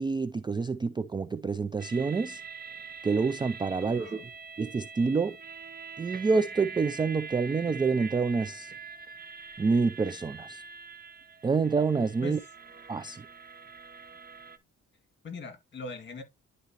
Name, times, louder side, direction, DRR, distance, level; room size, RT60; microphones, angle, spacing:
voice 1, 0.0-2.4 3.0-4.2 4.6-5.4 6.0-8.7 9.6-10.6 11.4-12.4 12.9-13.2, right 4 dB, 15° right, 0.3 m, -27 dB
sound 1, 1.8-14.6, right 5 dB, 30° right, 0.8 m, -44 dB
voice 2, 3.9-4.3 12.2-12.4 15.2-16.2, left 2 dB, 35° left, 2.0 m, -40 dB
10.5 x 4.0 x 2.8 m
cardioid pair, 90°, 30 cm